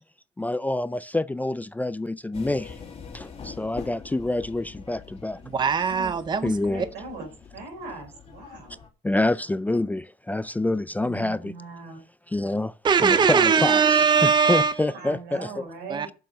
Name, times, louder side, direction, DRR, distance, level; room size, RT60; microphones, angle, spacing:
voice 1, 0.4-2.8 3.1-5.4 6.4-6.8 9.0-11.5 12.3-12.7 13.0-13.8 14.2-15.6, left 2 dB, 10° left, 0.4 m, -27 dB
sound 1, 2.3-8.9, left 6 dB, 35° left, 2.3 m, -44 dB
voice 2, 5.5-6.5 12.8-14.8 15.9-16.1, right 6 dB, 25° right, 0.7 m, -20 dB
voice 3, 6.6-8.8 11.0-12.0 14.9-16.1, right 3 dB, 85° right, 4.0 m, -40 dB
7.5 x 7.0 x 6.3 m
cardioid pair, 110°, 17 cm